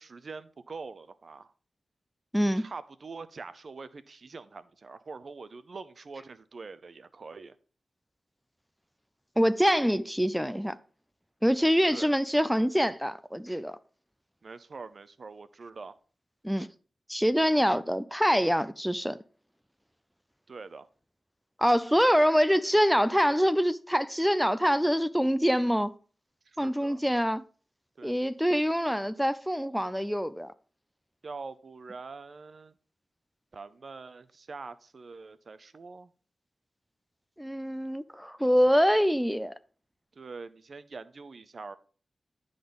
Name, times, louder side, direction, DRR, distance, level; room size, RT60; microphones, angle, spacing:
voice 1, 0.0-1.5 2.5-7.6 11.9-12.2 14.4-15.9 20.5-20.9 26.5-27.0 28.0-28.1 31.2-32.7 33.5-36.1 38.5-38.6 40.2-41.8, right 4 dB, 60° right, 0.7 m, -44 dB
voice 2, 2.3-2.6 9.4-10.8 11.4-13.8 16.4-16.7 17.1-19.2 21.6-25.9 26.6-27.4 28.0-30.5 37.4-39.5, equal, ahead, 0.5 m, -25 dB
10.0 x 4.0 x 5.3 m
wide cardioid pair, 75°, 0 cm